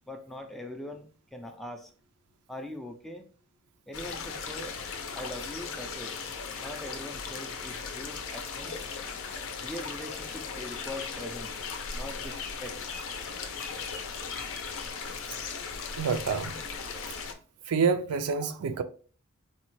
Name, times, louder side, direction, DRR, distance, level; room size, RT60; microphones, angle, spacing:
voice 1, 0.1-1.9 2.5-3.3 3.9-4.8 5.1-6.1 6.6-8.8 9.6-11.6 11.9-12.9, left 1 dB, ahead, 0.4 m, -42 dB
sound 1, 3.9-17.3, left 5 dB, 65° left, 0.6 m, -37 dB
voice 2, 16.0-16.6 17.7-18.8, right 5 dB, 75° right, 0.4 m, -27 dB
4.1 x 2.2 x 3.0 m
head